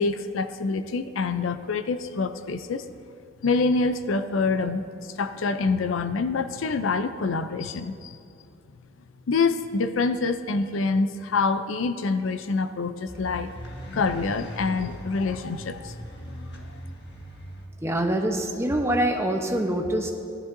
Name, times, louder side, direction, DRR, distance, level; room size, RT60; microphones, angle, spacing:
voice 1, 0.0-2.8 3.4-8.2 9.3-13.5 13.9-16.0, left 4 dB, 70° left, 10 dB, 0.5 m, -26 dB
sound 1, 13.1-17.7, equal, 55° left, 1.6 m, -39 dB
voice 2, 17.8-20.1, right 1 dB, 15° right, 3 dB, 0.8 m, -25 dB
17.5 x 11.0 x 2.6 m, 2.5 s
head